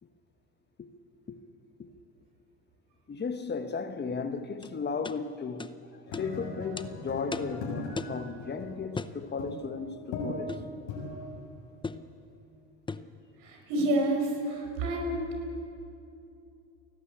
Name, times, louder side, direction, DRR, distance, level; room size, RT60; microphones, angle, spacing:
voice 1, 3.1-10.6, left 5 dB, 30° left, 1.4 m, -35 dB
sound 1, 4.6-4.7 5.0-5.2 5.6-5.7 6.1-6.3 6.8-6.9 7.3-7.6 8.0-8.2 9.0-9.2 10.5-10.7 11.8-12.1 12.9-13.1, left 4 dB, 15° left, 0.7 m, -37 dB
sound 2, 6.1-12.4, left 2 dB, 80° left, 6.4 m, -40 dB
voice 2, 13.4-15.2, right 1 dB, 75° right, 5.7 m, -28 dB
29.5 x 12.0 x 8.7 m
supercardioid pair, 95°, 34 cm